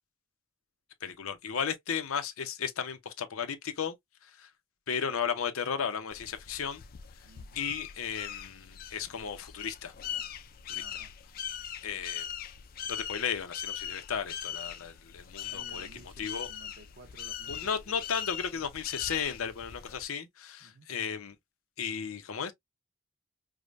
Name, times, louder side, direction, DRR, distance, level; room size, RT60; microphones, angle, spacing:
voice 1, 1.0-4.0 4.2-4.5 4.9-6.8 7.2-7.3 7.6-9.9 10.7-10.8 11.8-12.3 12.9-16.5 17.5-21.4 21.8-22.5, left 7 dB, 85° left, 0.7 m, -35 dB
sound 1, 6.1-20.0, left 9 dB, 45° left, 0.3 m, -41 dB
voice 2, 7.3-7.7 10.7-11.1 15.4-18.1 20.6-20.9, right 3 dB, 55° right, 0.9 m, -55 dB
4.8 x 2.1 x 2.4 m
head